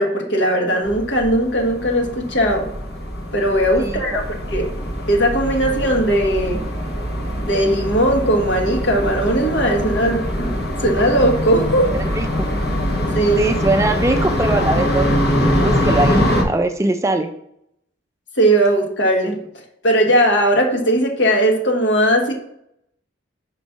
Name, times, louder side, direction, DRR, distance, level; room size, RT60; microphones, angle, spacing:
voice 1, 0.0-2.6 3.3-4.2 4.5-4.6 5.1-6.6 7.4-10.5 10.8-11.9 13.1-13.4 18.4-19.4 19.8-22.3, right 1 dB, 75° left, 1 dB, 1.5 m, -18 dB
sound 1, 0.8-16.4, equal, 55° left, 1.2 m, -23 dB
voice 2, 3.8-4.2 12.1-12.5 13.4-15.1 15.6-17.3, right 2 dB, 15° right, 6 dB, 0.4 m, -21 dB
5.3 x 4.2 x 5.7 m, 0.73 s
head